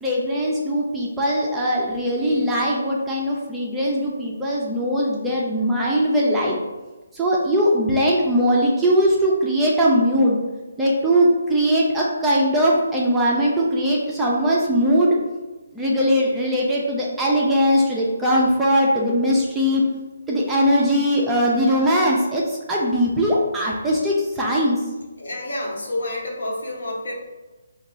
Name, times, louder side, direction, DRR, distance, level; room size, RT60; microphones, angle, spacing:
voice 1, 0.0-6.6 7.1-10.4 10.8-15.2 15.7-19.8 20.3-24.8, equal, 5° right, -5 dB, 0.3 m, -20 dB
voice 2, 25.2-27.1, left 1 dB, 70° left, -2 dB, 1.1 m, -29 dB
3.0 x 2.2 x 3.7 m, 1.1 s
hypercardioid pair, 170°, 0 cm